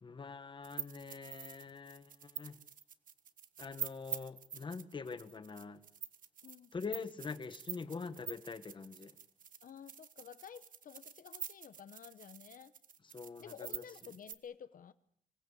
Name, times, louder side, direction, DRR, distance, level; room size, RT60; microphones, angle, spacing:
voice 1, 0.0-2.6 3.6-5.8 6.7-9.1 13.1-13.8, left 4 dB, 35° left, 1.2 m, -44 dB
sound 1, 0.6-14.3, right 7 dB, 80° right, 1.3 m, -46 dB
voice 2, 9.6-12.7 13.4-14.9, left 8 dB, 80° left, 0.9 m, -52 dB
25.0 x 19.0 x 8.2 m
wide cardioid pair, 155°, 14 cm